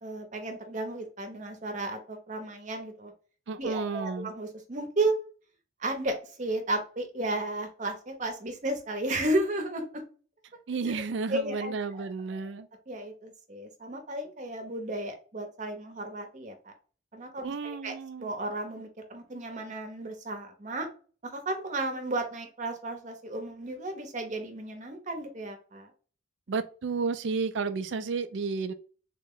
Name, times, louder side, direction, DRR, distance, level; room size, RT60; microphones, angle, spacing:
voice 1, 0.0-3.1 3.6-5.2 5.8-10.0 10.9-11.0 11.3-12.4 12.9-16.7 17.1-20.9 21.2-25.9, right 2 dB, 40° right, 0.7 m, -33 dB
voice 2, 3.5-4.3 10.7-12.7 17.4-18.3 26.5-28.7, right 4 dB, 65° right, 0.4 m, -32 dB
3.7 x 2.1 x 3.7 m
head